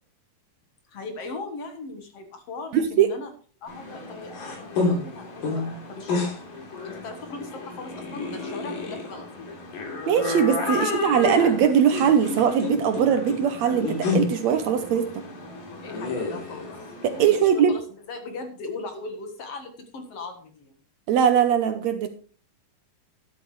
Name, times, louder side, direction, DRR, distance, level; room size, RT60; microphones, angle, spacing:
voice 1, 0.9-3.3 3.6-6.2 6.8-9.5 10.7-11.2 15.8-16.7 17.2-20.7, left 3 dB, 55° left, 6 dB, 2.2 m, -38 dB
voice 2, 2.7-3.1 10.1-15.2 17.0-17.7 21.1-22.1, right 8 dB, 70° right, 8 dB, 1.9 m, -21 dB
sound 1, 3.7-17.4, left 3 dB, 85° left, 4.7 m, -31 dB
12.0 x 11.5 x 3.2 m, 0.39 s
omnidirectional pair, 3.7 m